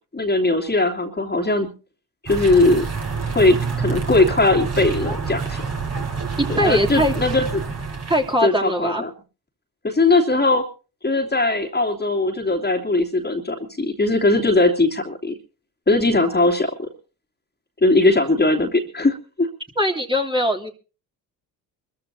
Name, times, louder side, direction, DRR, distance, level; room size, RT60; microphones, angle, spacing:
voice 1, 0.1-1.7 2.2-2.8 3.3-5.6 6.6-7.4 8.4-9.1 9.8-10.6 11.0-15.3 15.9-16.8 17.8-19.5, left 2 dB, 20° left, 1 dB, 2.9 m, -19 dB
sound 1, 2.3-8.4, right 5 dB, 30° right, 4.0 m, -27 dB
voice 2, 6.4-7.1 8.1-9.0 19.7-20.7, equal, 10° right, 0 dB, 3.1 m, -21 dB
25.0 x 14.5 x 2.8 m, 0.35 s
hypercardioid pair, 60°, 47 cm